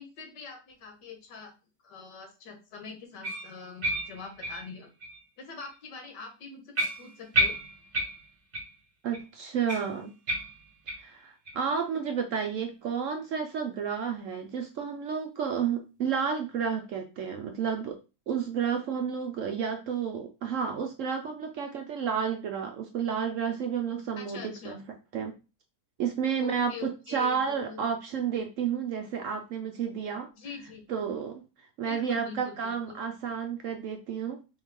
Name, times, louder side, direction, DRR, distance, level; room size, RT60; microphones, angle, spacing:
voice 1, 0.0-1.5 1.8-4.9 5.4-7.6 24.2-24.8 26.4-27.8 30.3-30.8 31.8-33.0, left 5 dB, 90° left, 3 dB, 1.8 m, -44 dB
sound 1, 3.2-5.2 5.6-5.8 6.2-6.3 6.7-8.8 9.1-9.2 9.7-11.1 11.4-11.6 12.0-12.1 12.6-12.7, equal, 45° right, 1.7 m, -32 dB
voice 2, 9.0-10.1 11.0-18.0 18.3-24.8 25.1-25.3 26.0-30.3 30.9-31.4 31.8-34.4, right 7 dB, 70° right, 5 dB, 0.8 m, -31 dB
4.3 x 3.2 x 3.6 m, 0.31 s
omnidirectional pair, 1.8 m